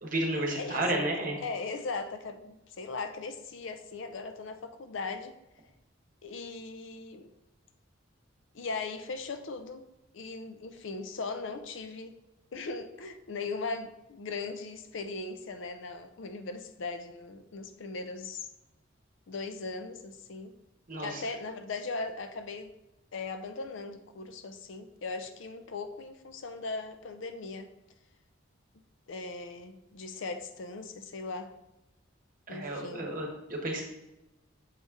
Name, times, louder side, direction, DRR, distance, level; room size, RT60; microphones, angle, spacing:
voice 1, 0.0-1.4 20.9-21.2 32.5-33.8, right 1 dB, 40° right, 1 dB, 1.1 m, -32 dB
voice 2, 0.5-1.1 1.4-5.4 6.2-7.3 8.5-9.9 10.1-12.2 12.5-18.5 19.3-20.5 21.0-22.7 23.1-27.7 29.1-31.5 32.5-33.1, left 3 dB, 65° left, 8 dB, 0.5 m, -39 dB
6.5 x 4.1 x 3.6 m, 0.93 s
head